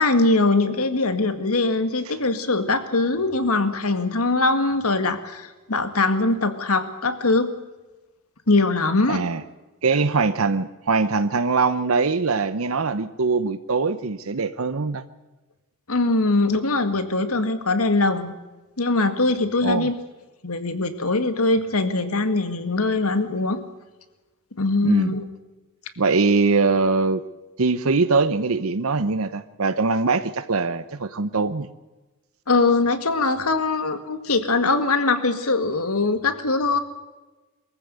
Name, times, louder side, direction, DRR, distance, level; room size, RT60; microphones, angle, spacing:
voice 1, 0.0-7.5 8.5-9.2 15.9-18.3 18.8-19.9 20.4-23.6 24.6-25.3 32.5-36.8, left 3 dB, 80° left, 10 dB, 2.0 m, -22 dB
voice 2, 9.1-9.4 9.8-15.0 19.6-19.9 24.8-25.2 26.0-27.2 27.6-31.7, right 4 dB, 70° right, 12 dB, 0.8 m, -22 dB
23.0 x 15.0 x 8.1 m, 1.2 s
head